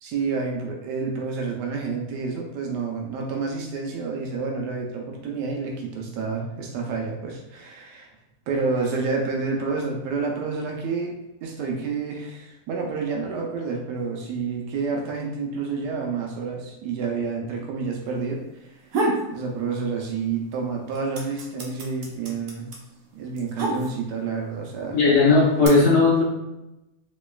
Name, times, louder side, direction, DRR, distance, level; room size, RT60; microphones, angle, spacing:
voice 1, 0.0-8.1 8.5-18.7 19.3-22.7 23.1-25.0, right 4 dB, 90° right, 0 dB, 1.2 m, -29 dB
sound 1, 18.6-19.3 19.7-20.4 20.7-24.3 25.0-25.7, right 2 dB, 65° right, 1.1 m, -28 dB
voice 2, 24.9-26.2, left 3 dB, 55° left, -7 dB, 0.9 m, -17 dB
4.0 x 3.0 x 2.3 m, 0.97 s
omnidirectional pair, 1.7 m